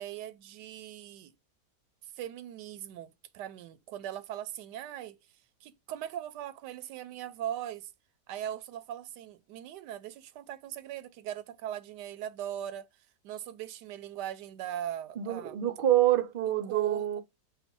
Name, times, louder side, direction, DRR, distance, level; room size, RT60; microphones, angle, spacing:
voice 1, 0.0-1.3 2.2-5.2 5.6-7.9 8.3-12.9 13.2-15.5 16.7-17.0, right 11 dB, 90° right, 1.2 m, -40 dB
voice 2, 15.2-17.2, right 12 dB, 60° right, 0.6 m, -26 dB
5.2 x 2.2 x 4.6 m
omnidirectional pair, 1.8 m